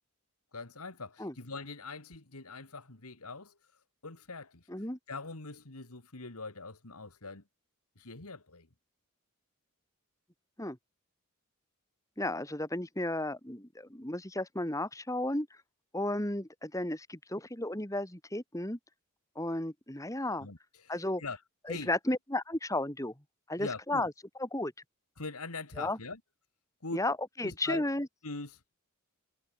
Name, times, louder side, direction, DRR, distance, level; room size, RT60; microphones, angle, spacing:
voice 1, 0.5-7.4 8.0-8.7 20.4-21.4 21.7-21.9 23.6-24.1 25.2-26.2 26.8-27.0 27.4-27.9 28.2-28.6, left 3 dB, 80° left, 2.5 m, -43 dB
voice 2, 12.2-15.5 15.9-18.8 19.4-20.5 20.9-21.2 21.7-23.1 23.5-24.1 24.5-24.7 25.8-26.0 26.9-28.1, left 1 dB, 15° left, 2.6 m, -33 dB
head